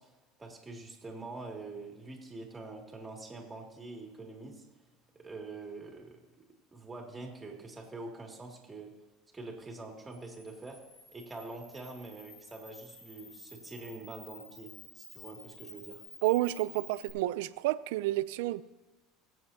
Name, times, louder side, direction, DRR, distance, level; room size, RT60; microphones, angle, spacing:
voice 1, 0.0-4.6 5.2-6.2 6.7-8.9 9.3-10.8 11.1-14.7 14.9-16.0, right 3 dB, 15° right, 2.5 m, -45 dB
Camera, 10.1-17.1, left 3 dB, 45° left, 4.5 m, -52 dB
voice 2, 16.2-18.6, right 17 dB, 80° right, 0.4 m, -30 dB
23.0 x 7.9 x 2.8 m
supercardioid pair, 115°, 0 cm